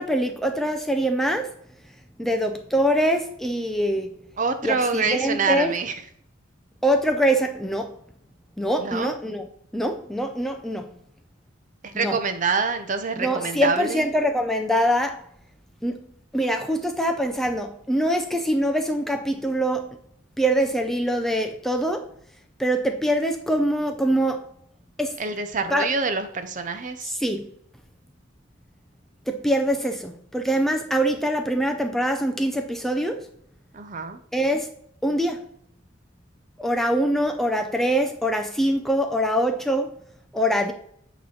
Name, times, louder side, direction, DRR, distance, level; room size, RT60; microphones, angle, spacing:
voice 1, 0.0-1.5 2.2-4.1 4.6-5.7 6.8-8.0 8.6-9.5 9.7-10.9 11.9-12.2 13.2-15.2 15.8-16.0 16.3-20.0 20.4-22.1 22.6-24.4 25.0-25.2 25.7-25.9 27.1-27.5 29.3-33.3 34.3-34.7 35.0-35.4 36.6-39.9 40.3-40.7, equal, ahead, 0.4 m, -24 dB
voice 2, 4.4-6.0 8.8-9.1 11.8-14.1 25.2-27.1 33.7-34.2, right 4 dB, 40° right, 0.6 m, -26 dB
8.6 x 3.1 x 5.7 m
head